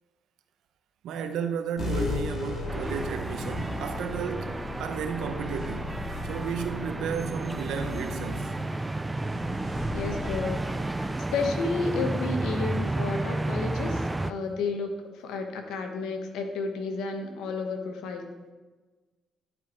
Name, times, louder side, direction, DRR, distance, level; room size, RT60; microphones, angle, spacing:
voice 1, 1.0-6.0 6.3-8.5, right 7 dB, 80° right, 0.7 m, -33 dB
sound 1, 1.8-12.6, left 3 dB, 55° left, 2.9 m, -37 dB
sound 2, 2.7-14.3, right 2 dB, 15° right, 0.3 m, -32 dB
voice 2, 9.9-10.6 11.0-18.3, left 4 dB, 90° left, 1.0 m, -32 dB
11.0 x 4.4 x 4.4 m
cardioid pair, 90°, 0 cm